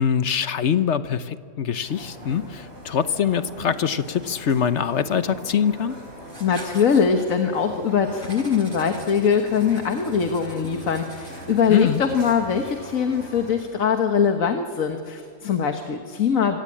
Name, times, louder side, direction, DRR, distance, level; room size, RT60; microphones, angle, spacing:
voice 1, 0.0-6.0 11.7-12.0, left 8 dB, 60° left, 12 dB, 1.1 m, -23 dB
sound 1, 1.8-13.6, right 1 dB, 55° right, 5.1 m, -41 dB
Writing, 6.2-7.0 8.2-12.5, right 1 dB, 20° right, 3.5 m, -45 dB
voice 2, 6.4-16.6, left 6 dB, 90° left, 5 dB, 1.7 m, -22 dB
25.5 x 17.5 x 8.6 m, 2.2 s
omnidirectional pair, 1.4 m